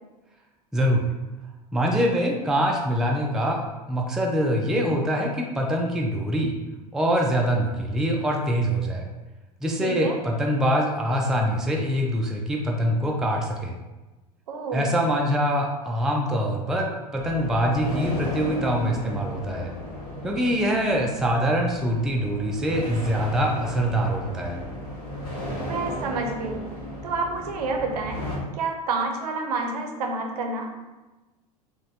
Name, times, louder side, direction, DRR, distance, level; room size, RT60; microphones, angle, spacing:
voice 1, 0.7-1.1 1.7-6.5 6.9-9.1 9.6-13.7 14.7-19.7 20.2-24.6, equal, 5° right, 0 dB, 0.3 m, -24 dB
voice 2, 9.8-10.2 14.5-14.9 25.6-26.6 27.0-28.2 28.5-30.8, right 3 dB, 70° right, 3 dB, 0.6 m, -29 dB
sound 1, 17.1-28.4, equal, 65° left, 1.2 m, -35 dB
2.9 x 2.4 x 2.7 m, 1.1 s
figure-of-eight pair, 80°, 21 cm